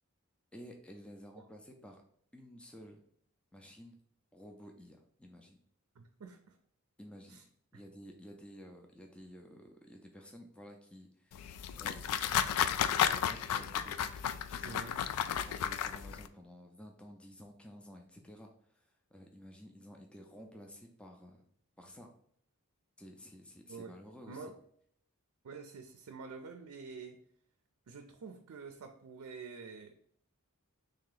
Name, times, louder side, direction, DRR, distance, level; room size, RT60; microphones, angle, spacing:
voice 1, 0.5-2.0 2.3-3.0 3.5-4.0 4.3-5.6 7.0-7.4 7.7-14.8 15.4-21.4 21.8-22.1 23.0-24.5, equal, 5° left, 2 dB, 0.4 m, -53 dB
voice 2, 6.0-6.6 7.3-7.4 7.7-7.8 14.6-15.0 23.7-23.9 24.3-24.6 25.4-27.2 27.9-29.9, right 4 dB, 85° right, 5 dB, 0.4 m, -48 dB
sound 1, 11.3-16.3, left 9 dB, 90° left, 0.3 m, -33 dB
3.2 x 2.8 x 3.8 m, 0.66 s
head